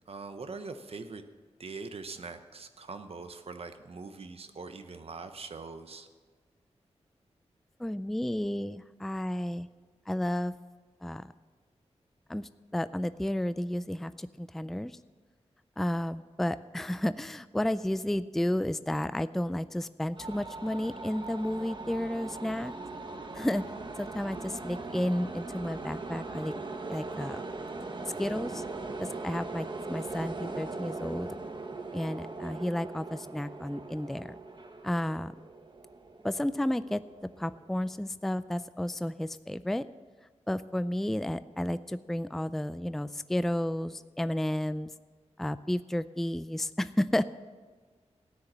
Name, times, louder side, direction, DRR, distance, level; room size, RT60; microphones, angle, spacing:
voice 1, 0.1-1.2 1.6-6.1, right 4 dB, 60° right, 8 dB, 0.9 m, -42 dB
voice 2, 7.8-9.7 10.1-10.5 11.0-11.3 12.3-15.0 15.8-22.7 23.3-23.6 24.0-26.5 26.9-27.4 28.0-28.6 29.0-31.3 31.9-34.4 34.8-35.3 36.2-37.0 37.4-39.9 40.5-44.9 45.4-47.2, left 1 dB, 5° left, 14 dB, 0.3 m, -32 dB
sound 1, 20.2-37.9, right 3 dB, 45° right, 1.2 m, -40 dB
14.0 x 9.6 x 7.4 m, 1.4 s
wide cardioid pair, 95°, 11 cm